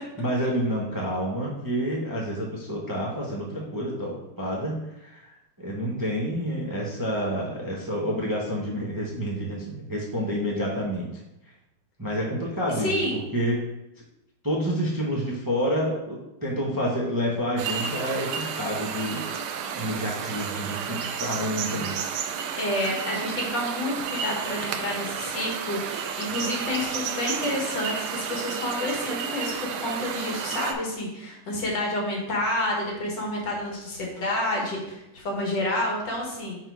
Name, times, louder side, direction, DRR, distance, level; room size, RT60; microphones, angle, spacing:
voice 1, 0.0-11.2 12.0-13.6 14.4-19.2 19.8-21.9, equal, 20° right, -4 dB, 0.5 m, -29 dB
voice 2, 12.8-13.2 22.6-36.6, left 1 dB, 90° left, -2 dB, 2.2 m, -29 dB
sound 1, 17.6-30.7, right 7 dB, 75° right, 1.1 m, -32 dB
4.8 x 4.4 x 4.6 m, 0.91 s
omnidirectional pair, 1.9 m